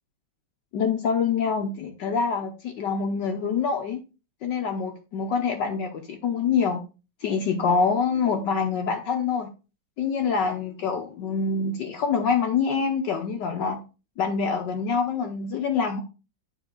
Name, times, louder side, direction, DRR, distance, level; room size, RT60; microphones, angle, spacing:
voice 1, 0.7-4.0 4.4-6.8 7.2-9.5 10.0-13.8 14.2-16.0, left 5 dB, 65° left, 3 dB, 1.4 m, -25 dB
8.3 x 5.5 x 3.8 m, 0.32 s
omnidirectional pair, 2.2 m